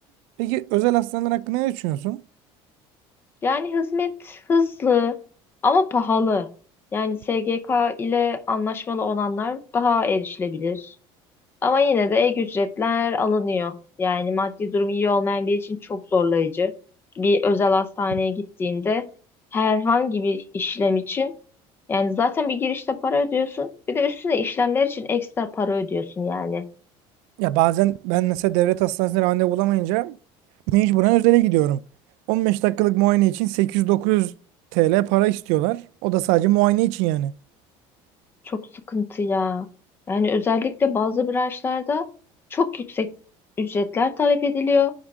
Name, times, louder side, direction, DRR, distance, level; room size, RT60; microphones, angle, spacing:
voice 1, 0.4-2.2 27.4-30.2 30.7-31.8 32.3-34.3 34.7-37.3, right 17 dB, 80° right, 0.4 m, -20 dB
voice 2, 3.4-5.2 5.6-6.5 6.9-10.9 11.6-16.7 17.2-19.0 19.5-21.3 21.9-26.6 38.5-38.6 38.9-39.7 40.1-42.1 42.5-43.1 43.6-44.9, left 4 dB, 20° left, 0.6 m, -23 dB
10.0 x 3.6 x 3.5 m
cardioid pair, 170°, 11 cm